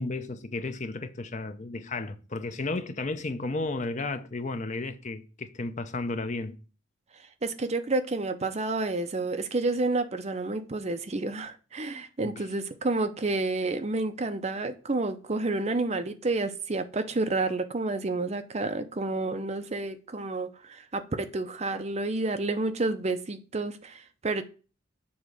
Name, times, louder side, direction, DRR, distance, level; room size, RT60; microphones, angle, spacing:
voice 1, 0.0-6.6 12.2-12.4, left 3 dB, 35° left, 0.6 m, -33 dB
voice 2, 7.4-24.4, right 2 dB, 35° right, 0.6 m, -30 dB
7.1 x 3.7 x 6.3 m
head